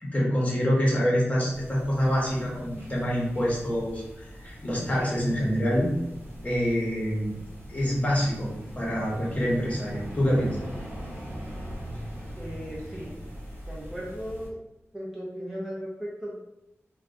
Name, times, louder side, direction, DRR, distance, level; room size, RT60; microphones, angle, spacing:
voice 1, 0.0-5.9 6.4-7.4 7.7-10.6, equal, 30° left, -5 dB, 0.8 m, -26 dB
sound 1, 1.5-14.5, equal, 50° right, 0.8 m, -41 dB
voice 2, 12.4-13.1 13.7-14.6 14.9-16.3, equal, 5° right, -6 dB, 0.5 m, -36 dB
2.6 x 2.2 x 2.4 m, 0.91 s
wide cardioid pair, 95°, 5 cm